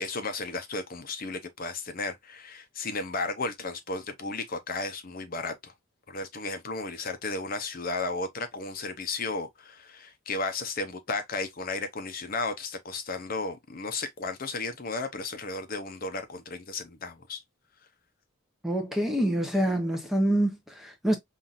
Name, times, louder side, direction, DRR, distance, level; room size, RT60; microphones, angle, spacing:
voice 1, 0.0-5.7 6.1-17.4, left 3 dB, 40° left, 0.6 m, -34 dB
voice 2, 18.6-21.2, right 1 dB, ahead, 0.6 m, -26 dB
5.6 x 2.5 x 2.4 m
head